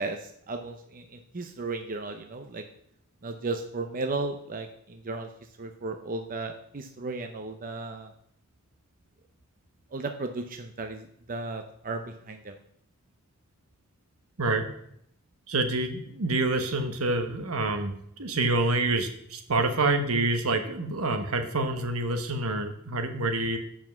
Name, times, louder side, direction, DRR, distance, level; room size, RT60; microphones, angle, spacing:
voice 1, 0.0-2.6 3.2-5.3 5.6-8.1 9.9-12.6, right 3 dB, 40° right, 6 dB, 0.7 m, -35 dB
voice 2, 15.5-17.9 18.2-23.6, right 2 dB, 75° right, 6 dB, 1.2 m, -27 dB
7.1 x 5.9 x 7.3 m, 0.70 s
head